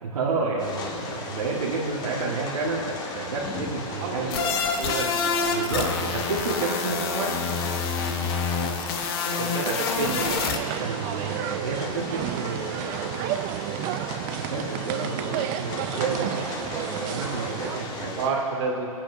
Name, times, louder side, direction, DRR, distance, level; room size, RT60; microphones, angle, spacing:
voice 1, 0.0-4.5 5.5-7.6 9.6-9.8 10.8-18.2, right 4 dB, 75° right, -4 dB, 1.7 m, -30 dB
sound 1, 0.6-18.3, left 3 dB, 25° left, 1.5 m, -36 dB
voice 2, 4.0-4.5 4.8-5.1 9.4-10.2 18.2-18.9, right 5 dB, 50° right, -1 dB, 2.4 m, -29 dB
sound 2, 4.3-10.6, left 5 dB, 40° left, 1.1 m, -27 dB
sound 3, 10.0-17.8, right 12 dB, 30° right, 0.4 m, -32 dB
24.5 x 8.9 x 2.7 m, 2.9 s
hypercardioid pair, 125°, 19 cm